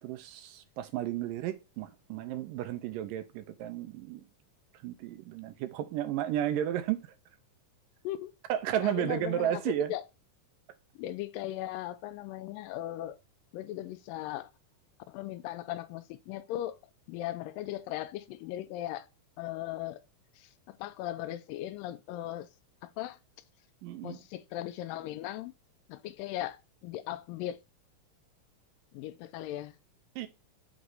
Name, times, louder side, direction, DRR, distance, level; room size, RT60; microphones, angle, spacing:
voice 1, 0.0-4.2 4.8-7.0 8.5-9.9 23.8-24.2 30.2-30.3, right 11 dB, 85° right, 2.3 m, -33 dB
voice 2, 8.8-9.6 9.9-10.0 11.0-13.2 13.5-14.5 15.1-16.8 17.1-19.1 19.4-20.0 20.4-22.5 22.8-23.2 24.0-25.5 25.9-27.6 28.9-29.8, left 13 dB, 85° left, 2.3 m, -38 dB
8.0 x 3.2 x 3.9 m
omnidirectional pair, 4.0 m